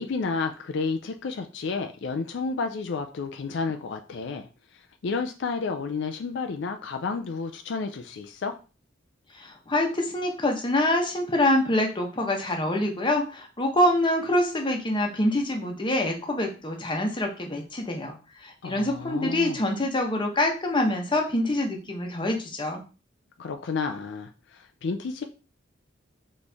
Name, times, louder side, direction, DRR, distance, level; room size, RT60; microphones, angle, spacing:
voice 1, 0.0-8.5 18.6-19.6 23.4-25.2, left 4 dB, 70° left, 5 dB, 0.4 m, -31 dB
voice 2, 9.3-18.1 18.4-22.8, left 1 dB, 25° left, 2 dB, 0.9 m, -25 dB
4.2 x 3.2 x 3.4 m, 0.33 s
head